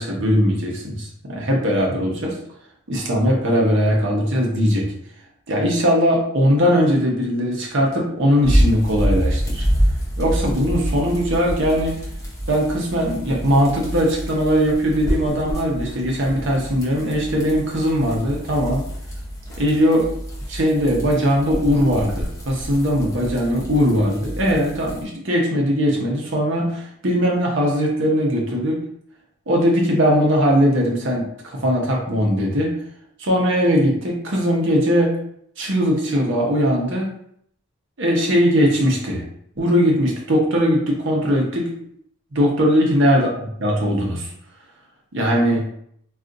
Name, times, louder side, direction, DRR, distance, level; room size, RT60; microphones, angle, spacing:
voice 1, 0.0-2.4 2.9-4.9 5.5-9.7 10.2-12.0 12.5-18.8 19.6-20.1 20.5-28.8 29.5-31.3 31.5-32.8 33.2-35.1 35.6-37.1 38.0-39.2 39.6-41.7 42.3-43.3 43.6-44.3 45.1-45.7, equal, 55° right, -2 dB, 0.8 m, -19 dB
sound 1, 8.4-25.0, equal, 15° left, 0.5 m, -26 dB
2.4 x 2.4 x 3.8 m, 0.69 s
head